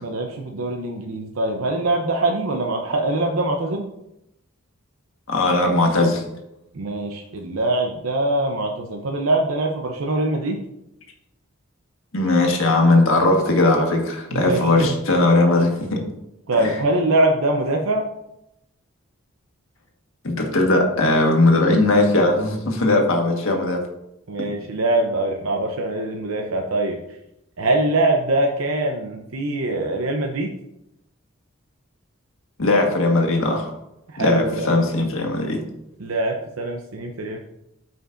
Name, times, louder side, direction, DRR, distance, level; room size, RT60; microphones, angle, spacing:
voice 1, 0.0-3.9 6.7-10.6 14.3-14.9 16.5-18.1 24.3-27.0 27.6-30.5 34.1-34.7 36.0-37.4, right 2 dB, 75° right, 2 dB, 0.7 m, -23 dB
voice 2, 5.3-6.2 12.1-16.0 16.6-16.7 20.2-23.8 32.6-33.7 34.2-35.6, left 2 dB, 70° left, 1 dB, 1.5 m, -18 dB
13.0 x 5.2 x 2.6 m, 0.85 s
head